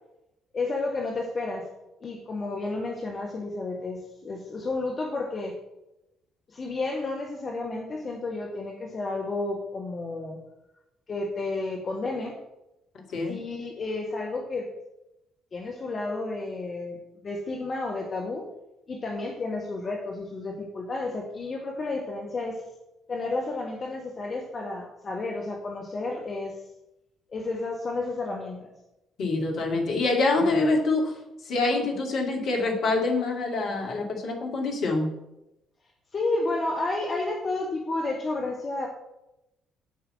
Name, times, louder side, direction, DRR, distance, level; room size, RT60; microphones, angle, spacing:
voice 1, 0.5-1.7 2.0-5.6 6.5-10.4 11.1-12.4 13.3-14.7 15.5-17.0 17.2-18.4 18.9-22.6 23.1-26.6 27.3-28.7 36.1-38.9, left 2 dB, 40° left, 0 dB, 1.5 m, -31 dB
voice 2, 29.2-31.1 31.5-35.1, left 3 dB, 55° left, 1 dB, 2.3 m, -25 dB
8.6 x 5.6 x 7.9 m, 0.91 s
figure-of-eight pair, 45°, 0 cm